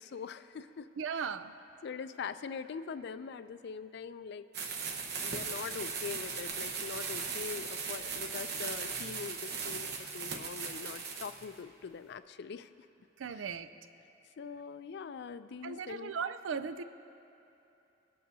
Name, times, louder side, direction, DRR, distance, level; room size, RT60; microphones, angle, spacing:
voice 1, 0.0-1.3 1.8-4.5 5.2-12.7 13.3-13.5 14.4-16.1, left 6 dB, 60° left, 12 dB, 0.4 m, -43 dB
voice 2, 1.0-1.5 13.2-13.7 15.6-16.8, right 6 dB, 85° right, 12 dB, 0.4 m, -37 dB
sound 1, 4.5-11.4, right 5 dB, 60° right, 0.9 m, -38 dB
19.5 x 8.5 x 2.7 m, 2.9 s
head